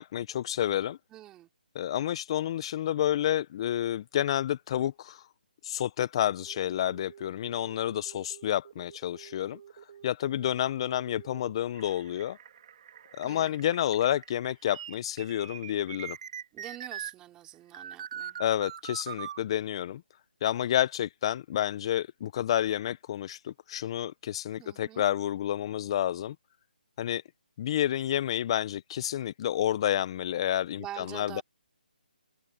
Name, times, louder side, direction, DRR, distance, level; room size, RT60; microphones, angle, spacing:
voice 1, 0.0-1.0 1.7-5.3 5.6-9.6 10.0-12.4 13.2-16.2 18.4-20.0 20.4-26.3 27.0-27.2 27.6-31.4, left 11 dB, 35° left, 0.7 m, -29 dB
voice 2, 1.1-1.5 13.2-13.6 16.5-18.4 24.6-25.0 30.8-31.4, right 14 dB, 15° right, 3.2 m, -45 dB
sound 1, 6.4-17.1 17.7-19.4, right 9 dB, 45° right, 2.5 m, -44 dB
figure-of-eight pair, 155°, 5 cm